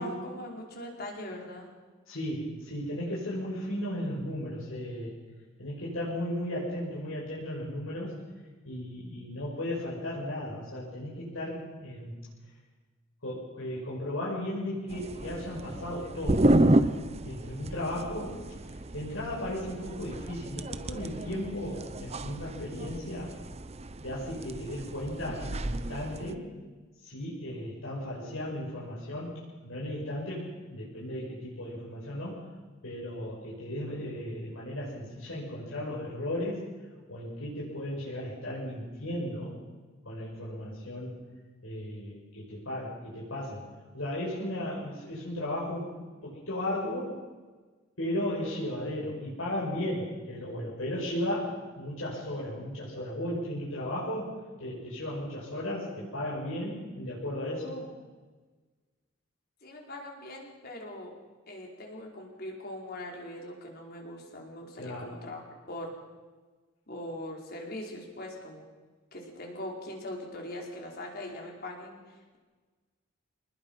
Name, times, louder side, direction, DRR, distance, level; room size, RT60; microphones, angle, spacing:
voice 1, 0.0-1.7 59.6-61.1 61.5-65.4 65.7-66.0 66.9-68.6 69.1-72.4, left 1 dB, 50° left, 0 dB, 4.8 m, -41 dB
voice 2, 2.1-5.1 5.6-8.1 8.6-12.1 13.2-17.0 17.2-18.4 18.9-23.3 24.0-26.5 27.0-32.5 32.8-36.7 37.1-39.6 40.0-41.1 41.6-43.7 43.9-45.9 46.2-47.2 48.0-57.9 64.8-65.1, left 1 dB, 75° left, -6 dB, 6.6 m, -35 dB
sound 1, 14.9-26.3, right 1 dB, 30° right, 0.8 m, -31 dB
26.0 x 20.0 x 5.7 m, 1.3 s
head